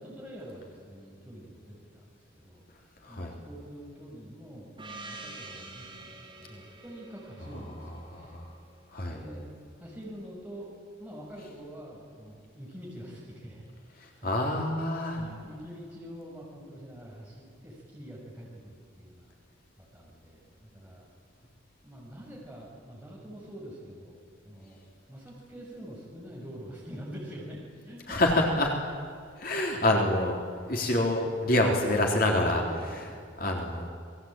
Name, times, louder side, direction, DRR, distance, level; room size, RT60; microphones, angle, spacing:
voice 1, 0.0-2.6 3.1-8.4 9.1-9.5 9.8-10.7 11.0-14.4 15.1-19.3 19.8-21.0 21.8-24.8 25.1-27.6 27.8-28.2 29.2-29.3 30.6-30.7 32.4-33.6, equal, 10° right, -4 dB, 6.3 m, -45 dB
Gong, 4.8-9.1, right 2 dB, 25° right, 3.9 m, -47 dB
voice 2, 8.1-8.5 8.9-9.2 14.0-15.2 28.1-28.7 29.4-30.4 30.7-32.6 33.0-33.1 33.4-33.9, left 1 dB, 45° left, 1 dB, 3.5 m, -26 dB
27.5 x 20.5 x 9.0 m, 2.2 s
head